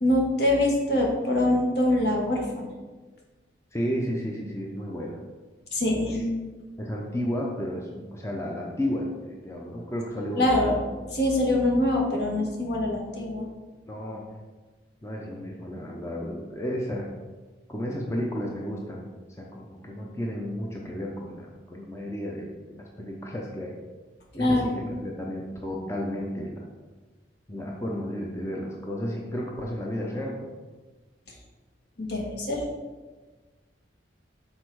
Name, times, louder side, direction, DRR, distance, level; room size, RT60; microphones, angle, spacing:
voice 1, 0.0-2.7 5.7-6.2 10.4-10.7 11.1-13.5 24.3-25.0 31.3-31.4 32.0-32.6, left 1 dB, 60° left, -1 dB, 1.4 m, -24 dB
voice 2, 3.7-5.2 6.8-10.9 13.9-14.2 15.0-17.1 17.7-19.1 19.4-23.8 24.3-26.7 27.5-30.5, equal, 15° left, -2 dB, 0.6 m, -32 dB
6.6 x 4.3 x 4.6 m, 1.3 s
head